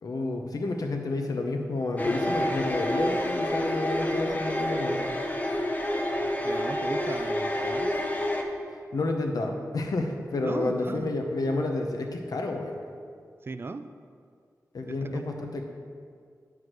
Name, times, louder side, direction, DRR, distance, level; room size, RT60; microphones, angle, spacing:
voice 1, 0.0-5.0 8.7-12.8 14.7-15.6, left 2 dB, 75° left, 3 dB, 0.9 m, -30 dB
sound 1, 2.0-8.4, left 1 dB, 25° left, 0.7 m, -28 dB
voice 2, 6.4-7.9 10.4-11.2 13.4-13.9 14.9-15.2, right 3 dB, 40° right, 10 dB, 0.3 m, -37 dB
8.0 x 4.8 x 6.0 m, 2.1 s
wide cardioid pair, 125°, 6 cm